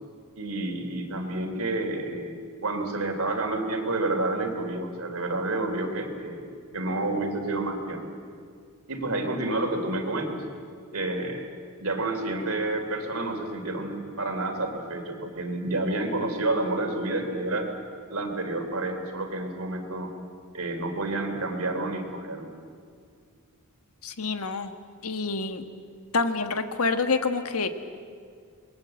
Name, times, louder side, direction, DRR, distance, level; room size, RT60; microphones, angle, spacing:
voice 1, 0.4-6.4 6.7-8.1 8.9-10.4 10.9-11.5 11.8-17.7 18.1-20.1 20.5-22.5, right 2 dB, 70° right, 5 dB, 3.5 m, -29 dB
voice 2, 24.0-24.7 25.0-25.6 26.1-27.7, left 4 dB, 75° left, 8 dB, 1.5 m, -27 dB
27.0 x 21.0 x 7.9 m, 2.2 s
head